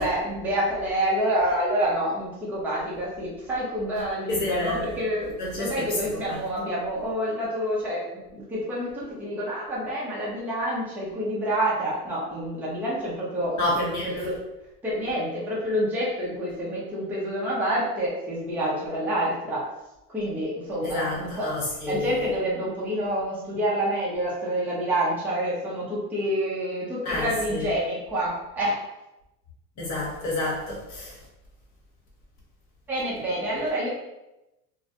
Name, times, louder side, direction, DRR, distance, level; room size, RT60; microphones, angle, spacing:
voice 1, 0.0-14.4 14.8-19.7 20.1-21.5 21.9-28.8 32.9-33.9, equal, 5° right, -7 dB, 0.5 m, -28 dB
voice 2, 4.3-5.0 5.4-6.4 13.6-14.3 20.8-22.2 27.0-27.7 29.8-31.2, left 2 dB, 35° left, -4 dB, 1.0 m, -29 dB
2.2 x 2.1 x 2.7 m, 0.95 s
supercardioid pair, 115°, 49 cm